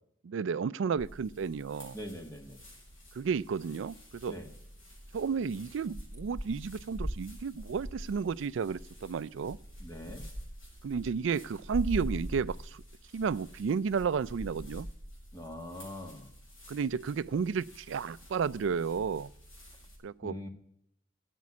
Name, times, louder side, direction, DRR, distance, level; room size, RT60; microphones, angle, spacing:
voice 1, 0.2-2.0 3.2-4.4 5.1-9.6 10.8-12.8 13.1-14.9 16.7-19.3 20.0-20.4, right 6 dB, 70° right, 0.4 m, -32 dB
sound 1, 1.0-20.0, equal, 85° left, 6.5 m, -44 dB
voice 2, 1.9-2.6 4.3-4.5 9.8-10.2 15.3-16.3 20.2-20.5, left 1 dB, 15° left, 1.3 m, -42 dB
9.3 x 8.5 x 8.4 m
head